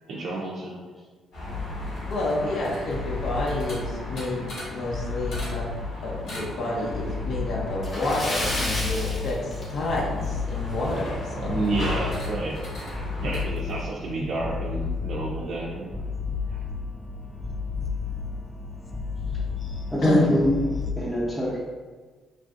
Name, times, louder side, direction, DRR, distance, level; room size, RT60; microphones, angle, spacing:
voice 1, 0.1-0.9 11.3-12.6 13.2-16.0 16.5-16.6, right 2 dB, 70° right, -4 dB, 0.4 m, -30 dB
sound 1, 1.3-13.4, left 1 dB, 80° left, 1.3 m, -38 dB
sound 2, 1.4-20.9, left 4 dB, 20° left, 0.3 m, -33 dB
voice 2, 2.1-5.7 6.0-11.6 20.0-20.3, left 2 dB, 65° left, -3 dB, 0.7 m, -29 dB
Splash splatter, 7.8-10.2 10.5-10.6 11.1-11.2 12.6-12.7 13.0-13.1 13.8-14.0, left 1 dB, 40° left, 0.9 m, -31 dB
voice 3, 19.9-20.6 20.9-21.6, equal, ahead, -10 dB, 0.7 m, -23 dB
3.2 x 2.5 x 2.4 m, 1.4 s
cardioid pair, 90°, 0 cm